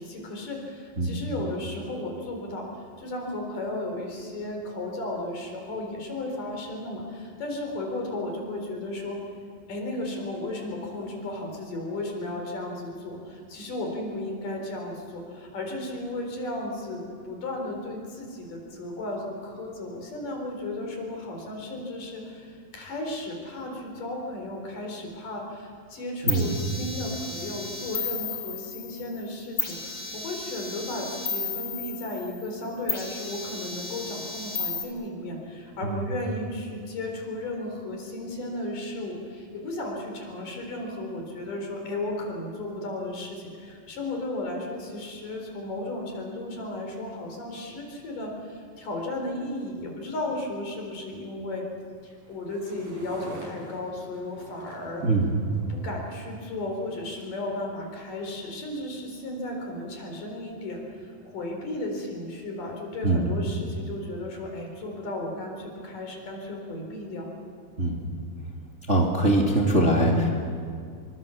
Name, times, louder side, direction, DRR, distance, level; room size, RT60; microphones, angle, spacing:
voice 1, 0.0-9.2 9.7-51.6 52.0-55.0 55.7-67.3, left 1 dB, 65° left, 1 dB, 5.7 m, -34 dB
sound 1, 26.3-29.2 29.6-32.5 32.9-34.8, left 4 dB, 30° left, 2.5 m, -34 dB
sound 2, 52.0-57.4, right 2 dB, 75° right, 6.5 m, -47 dB
voice 2, 55.0-55.4 63.0-63.4 67.8-68.0 68.9-70.3, right 1 dB, 20° right, -1 dB, 2.4 m, -22 dB
27.0 x 23.5 x 7.2 m, 2.2 s
omnidirectional pair, 4.1 m